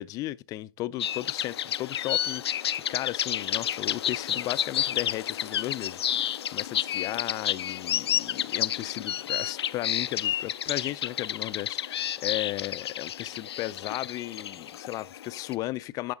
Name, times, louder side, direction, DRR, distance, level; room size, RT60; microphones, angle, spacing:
voice 1, 0.0-16.1, left 16 dB, 25° left, 0.4 m, -35 dB
sound 1, 1.0-15.5, left 10 dB, 90° left, 0.4 m, -31 dB
11.0 x 5.2 x 3.8 m
hypercardioid pair, 135°, 13 cm